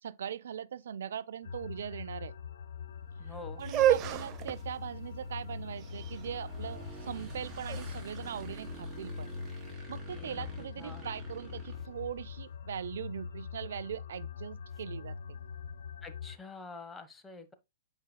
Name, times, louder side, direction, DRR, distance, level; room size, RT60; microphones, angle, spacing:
voice 1, 0.0-2.3 3.6-9.3 9.7-15.1, right 8 dB, 75° right, 0.4 m, -40 dB
sound 1, 1.4-16.4, left 6 dB, 85° left, 0.7 m, -43 dB
Motorcycle / Engine, 2.8-12.5, right 3 dB, 15° right, 3.7 m, -48 dB
voice 2, 3.2-3.6 10.1-11.1 16.0-17.5, left 3 dB, 10° left, 1.2 m, -47 dB
sound 2, 3.6-9.5, right 12 dB, 35° right, 0.7 m, -33 dB
8.7 x 5.2 x 2.2 m
hypercardioid pair, 125°, 0 cm